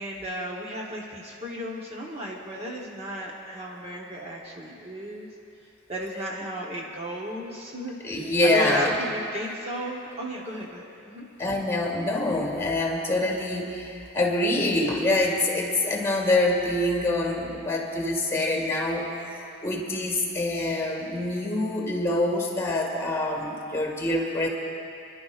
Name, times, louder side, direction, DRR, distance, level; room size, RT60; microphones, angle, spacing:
voice 1, 0.0-5.3 5.9-11.2, equal, 30° right, -3 dB, 1.0 m, -34 dB
voice 2, 8.0-9.0 11.4-19.1 19.6-24.5, left 2 dB, 15° left, 0 dB, 1.7 m, -25 dB
28.0 x 11.5 x 2.4 m, 2.6 s
head